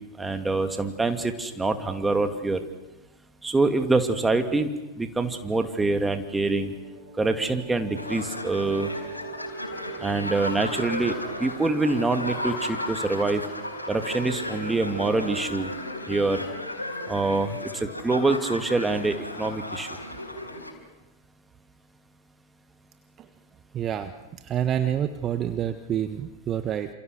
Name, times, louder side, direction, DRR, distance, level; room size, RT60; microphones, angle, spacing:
voice 1, 0.2-2.6 3.4-6.7 7.2-8.9 10.0-13.4 13.9-15.7 16.1-16.4 17.1-19.9, right 3 dB, 10° right, 7 dB, 2.6 m, -25 dB
sound 1, 6.1-16.4, right 5 dB, 45° right, 6.0 m, -44 dB
sound 2, 8.0-20.7, left 1 dB, 90° left, 4.7 m, -35 dB
voice 2, 23.7-24.1 24.4-26.9, right 10 dB, 30° right, 10 dB, 1.3 m, -27 dB
29.0 x 27.5 x 6.6 m, 1.1 s
figure-of-eight pair, 95°, 0 cm